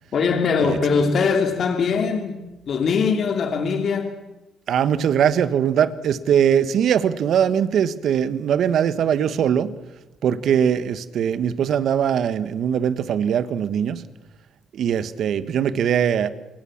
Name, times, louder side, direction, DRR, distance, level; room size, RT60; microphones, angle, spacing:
voice 1, 0.1-2.4 2.7-4.2, left 5 dB, 60° left, 5 dB, 2.6 m, -21 dB
voice 2, 4.7-9.7 10.2-14.0 14.7-16.3, right 8 dB, 70° right, 13 dB, 1.4 m, -21 dB
27.0 x 20.0 x 7.5 m, 1.0 s
supercardioid pair, 65°, 0 cm